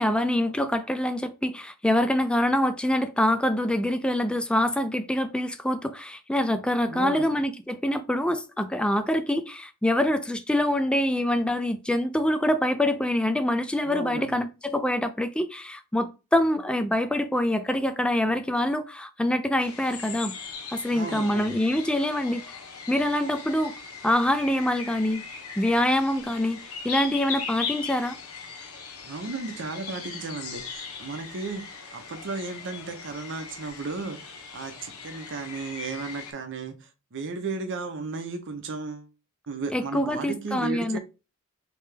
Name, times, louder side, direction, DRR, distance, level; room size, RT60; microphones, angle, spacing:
voice 1, 0.0-20.3 20.7-22.4 22.9-23.7 24.0-25.2 25.6-26.6 26.8-28.2 39.7-41.0, left 1 dB, 5° left, 0.3 m, -25 dB
voice 2, 6.9-7.4 13.8-14.4 20.9-21.6 29.0-31.6 31.9-39.1 39.5-41.0, right 4 dB, 60° right, 0.7 m, -35 dB
sound 1, 19.6-36.3, left 6 dB, 75° left, 0.9 m, -39 dB
3.3 x 2.9 x 3.3 m
head